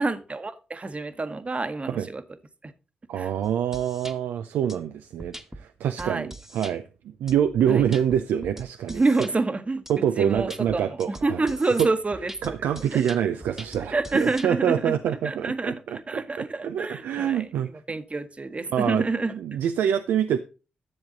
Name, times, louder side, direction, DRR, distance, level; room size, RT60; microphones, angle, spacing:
voice 1, 0.0-2.2 2.6-2.7 3.2-3.3 6.0-6.3 7.7-7.9 8.9-12.5 12.9-13.0 13.9-15.0 15.2-19.3, right 3 dB, 35° right, 1.2 m, -28 dB
voice 2, 3.1-6.8 7.2-9.0 9.9-11.4 11.8-11.9 12.4-17.7 18.7-19.1 19.3-20.4, right 9 dB, 80° right, 0.5 m, -26 dB
sound 1, 3.4-4.1 4.7-4.8 5.2-5.6 6.0-6.7 7.3-9.3 9.9-10.0 10.4-14.5, right 1 dB, 10° right, 1.4 m, -42 dB
11.0 x 7.2 x 3.9 m
supercardioid pair, 40°, 3 cm